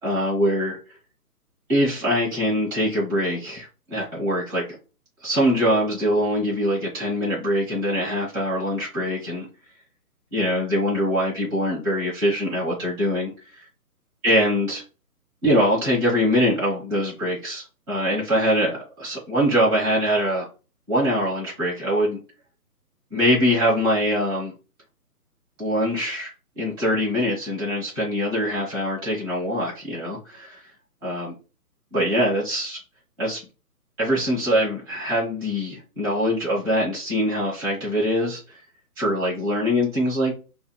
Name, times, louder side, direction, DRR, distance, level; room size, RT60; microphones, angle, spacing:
voice 1, 0.0-0.8 1.7-4.7 5.2-9.5 10.3-13.3 14.2-14.8 15.4-20.5 20.9-22.2 23.1-24.5 25.6-26.3 26.6-30.7 31.0-31.3 31.9-32.8 33.2-33.4 34.0-38.6 39.0-40.3, equal, 15° right, -8 dB, 1.1 m, -23 dB
4.0 x 2.2 x 2.2 m, 0.33 s
figure-of-eight pair, 150°, 47 cm